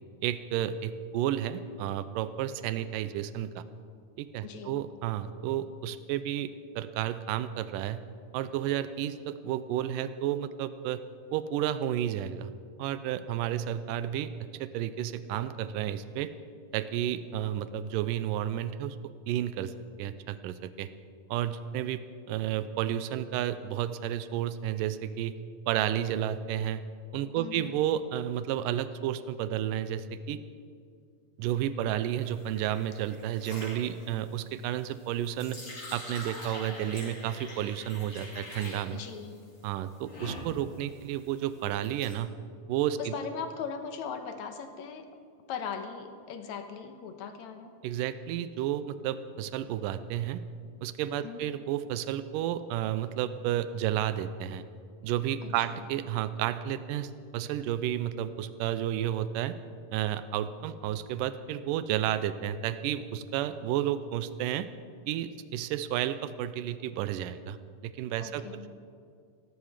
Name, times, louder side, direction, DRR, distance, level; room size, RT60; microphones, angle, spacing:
voice 1, 0.2-3.6 4.2-6.5 6.8-8.0 8.3-11.0 11.3-12.5 12.8-14.3 14.6-16.3 16.7-19.0 19.3-19.7 20.0-20.9 21.3-22.0 22.3-25.4 25.7-26.8 27.1-30.4 31.4-35.6 35.9-39.0 39.6-42.3 42.7-43.1 47.8-50.4 50.8-54.6 55.0-59.6 59.9-64.7 65.1-67.6 67.8-68.4, right 11 dB, 85° right, 13 dB, 2.3 m, -31 dB
voice 2, 4.4-4.9 27.4-27.7 38.9-39.4 43.0-45.1 45.5-47.7 51.2-51.5 55.4-55.9 68.2-68.7, left 6 dB, 65° left, 7 dB, 2.2 m, -39 dB
sound 1, 32.2-42.1, left 1 dB, 35° left, 6.2 m, -44 dB
17.5 x 15.0 x 5.0 m, 2.2 s
omnidirectional pair, 3.8 m